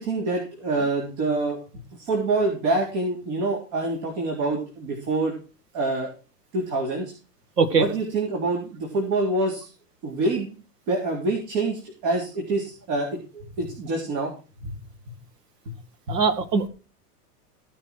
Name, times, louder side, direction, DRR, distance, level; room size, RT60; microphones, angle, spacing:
voice 1, 0.0-5.3 5.7-6.1 6.5-7.1 7.8-9.7 10.0-10.5 10.9-14.3 14.6-14.7, right 2 dB, 60° right, 0 dB, 3.8 m, -26 dB
voice 2, 16.1-16.7, right 5 dB, 90° right, 11 dB, 2.1 m, -21 dB
16.5 x 6.1 x 4.5 m, 0.34 s
hypercardioid pair, 115°, 46 cm